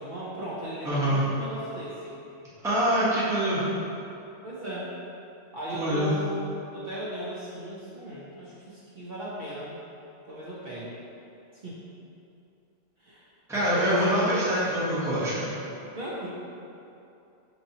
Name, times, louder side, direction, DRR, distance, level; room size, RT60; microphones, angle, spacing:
voice 1, 0.0-2.1 4.4-4.9 5.5-9.8 10.3-11.0 11.5-11.8 13.0-13.2 13.9-14.2 15.9-16.3, equal, 55° right, -8 dB, 0.8 m, -37 dB
voice 2, 0.8-1.2 2.6-3.6 5.7-6.1 13.5-15.5, equal, 5° right, -10 dB, 0.7 m, -25 dB
4.6 x 3.0 x 2.7 m, 2.7 s
omnidirectional pair, 1.2 m